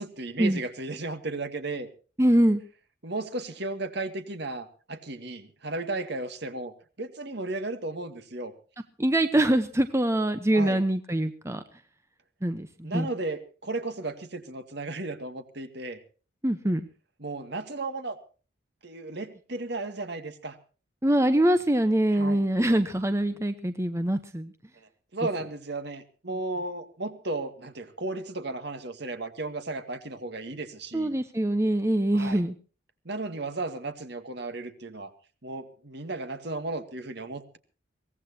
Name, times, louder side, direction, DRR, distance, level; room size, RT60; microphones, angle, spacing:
voice 1, 0.0-1.9 3.0-8.5 10.5-10.8 12.8-16.0 17.2-18.2 18.8-20.6 22.1-22.4 25.1-31.1 32.1-32.4 33.0-35.1 35.4-37.6, right 2 dB, 55° right, 8 dB, 2.2 m, -34 dB
voice 2, 2.2-2.6 9.0-11.6 12.4-13.1 16.4-16.8 21.0-24.5 30.9-32.5, right 1 dB, 15° right, 10 dB, 0.9 m, -24 dB
23.0 x 18.0 x 2.9 m, 0.38 s
head